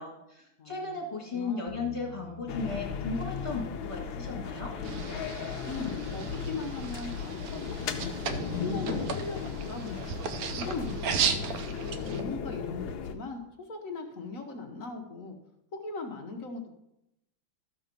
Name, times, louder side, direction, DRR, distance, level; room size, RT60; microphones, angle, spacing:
voice 1, 0.0-4.7, left 3 dB, 15° left, -3 dB, 2.0 m, -35 dB
voice 2, 0.6-1.0 1.3-1.7 5.7-10.1 10.6-11.8 12.1-15.4 15.7-16.7, left 4 dB, 50° left, 3 dB, 1.1 m, -39 dB
Bass guitar, 1.7-7.9, right 3 dB, 55° right, 2.7 m, -53 dB
sound 1, 2.5-13.1, left 6 dB, 70° left, 1.4 m, -36 dB
sound 2, 4.8-12.2, right 7 dB, 75° right, 0.8 m, -35 dB
13.5 x 4.6 x 5.2 m, 0.86 s
omnidirectional pair, 2.4 m